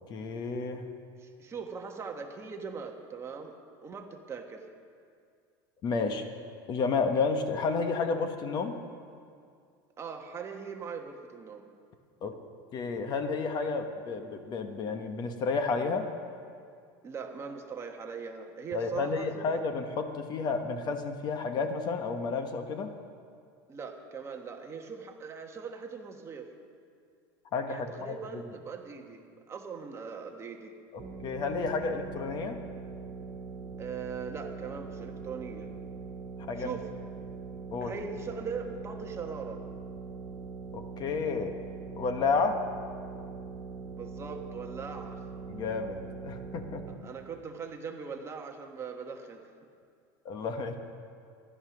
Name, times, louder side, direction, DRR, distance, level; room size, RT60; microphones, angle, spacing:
voice 1, 0.1-0.9 5.8-6.2 6.7-8.8 12.2-12.3 12.7-16.1 18.7-22.9 27.5-28.4 30.9-32.6 36.5-36.8 37.7-37.9 40.7-41.5 42.0-42.6 45.5-46.9 50.2-50.7, left 4 dB, 35° left, 7 dB, 1.1 m, -31 dB
voice 2, 1.2-3.6 3.8-4.7 10.0-11.7 17.0-19.5 23.7-26.5 27.7-30.7 33.8-35.7 36.6-36.9 37.8-39.6 43.9-45.2 46.9-49.5, right 5 dB, 25° right, 4 dB, 1.3 m, -40 dB
sound 1, 31.0-46.9, right 4 dB, 40° right, 2.2 m, -42 dB
14.5 x 11.5 x 6.1 m, 2.3 s
supercardioid pair, 140°, 12 cm